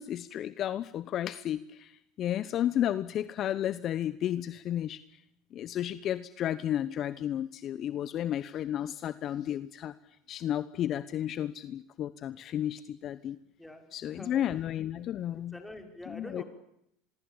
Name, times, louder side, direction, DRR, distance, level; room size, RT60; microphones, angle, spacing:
voice 1, 0.0-5.0 5.5-9.9 10.3-13.4 13.9-15.5 16.1-16.4, left 11 dB, 45° left, 15 dB, 0.9 m, -32 dB
voice 2, 13.6-14.4 15.5-16.4, left 1 dB, 5° left, 5 dB, 5.1 m, -46 dB
25.5 x 22.0 x 9.0 m, 0.78 s
hypercardioid pair, 95°, 0 cm